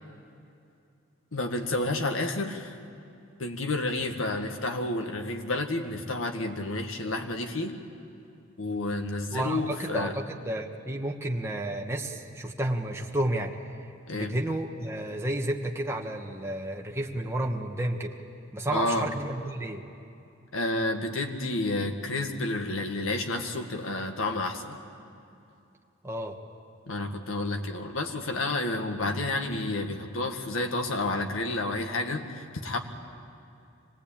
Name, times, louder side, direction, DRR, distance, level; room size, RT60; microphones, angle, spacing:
voice 1, 1.3-2.8 3.4-7.8 8.6-10.2 14.1-14.3 18.7-19.1 20.5-24.8 26.9-32.8, left 2 dB, 90° left, 4 dB, 1.9 m, -30 dB
voice 2, 9.3-13.5 14.1-18.1 18.5-19.8 26.0-26.4, right 1 dB, 15° right, 0 dB, 1.4 m, -31 dB
25.5 x 19.5 x 8.8 m, 2.6 s
head